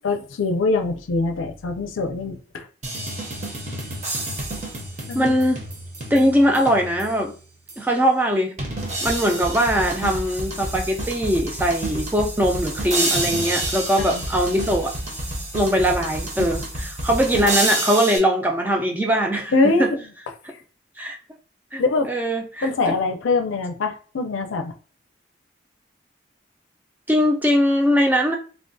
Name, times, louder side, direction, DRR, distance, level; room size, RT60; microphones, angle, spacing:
voice 1, 0.0-2.7 5.1-5.3 14.0-14.2 19.5-20.1 21.8-22.1 22.6-24.7, left 3 dB, 90° left, 6 dB, 0.5 m, -23 dB
sound 1, 2.8-7.2 7.7-7.8 8.6-18.2, right 1 dB, 40° right, 0.7 m, -29 dB
voice 2, 5.1-5.6 6.1-7.3 7.8-8.6 9.0-14.9 15.5-19.5 19.8-19.9 21.0-21.2 21.7-22.9 27.1-28.4, equal, 10° right, 2 dB, 0.3 m, -21 dB
3.4 x 2.2 x 2.6 m, 0.39 s
head